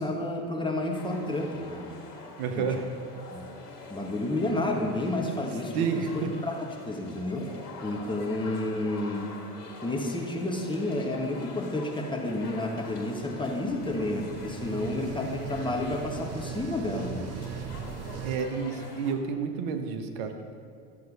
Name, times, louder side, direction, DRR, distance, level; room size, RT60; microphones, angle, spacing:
voice 1, 0.0-1.9 2.6-2.7 3.3-3.5 3.9-7.5 7.8-9.3 9.8-17.3, left 1 dB, 10° left, 1 dB, 1.5 m, -31 dB
sound 1, 0.9-19.2, left 3 dB, 85° left, 1.7 m, -44 dB
voice 2, 2.4-2.9 5.7-6.3 18.2-20.5, right 6 dB, 55° right, 6 dB, 1.2 m, -30 dB
sound 2, 12.9-18.4, right 8 dB, 35° right, 0.8 m, -39 dB
13.0 x 7.7 x 5.3 m, 2.4 s
hypercardioid pair, 85°, 45 cm